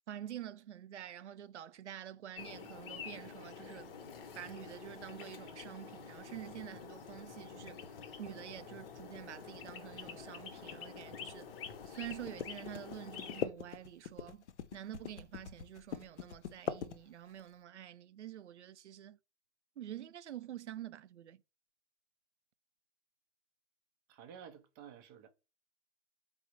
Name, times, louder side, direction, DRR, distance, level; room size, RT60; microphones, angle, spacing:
voice 1, 0.1-3.9 4.4-7.8 8.2-11.5 11.9-14.4 14.7-19.2 19.8-21.4, right 11 dB, 90° right, 0.5 m, -47 dB
sound 1, 2.3-13.5, left 6 dB, 55° left, 0.8 m, -48 dB
sound 2, 6.5-17.5, left 8 dB, 85° left, 0.6 m, -44 dB
voice 2, 24.1-25.3, right 8 dB, 20° right, 0.4 m, -52 dB
4.1 x 2.0 x 4.4 m
hypercardioid pair, 135°, 34 cm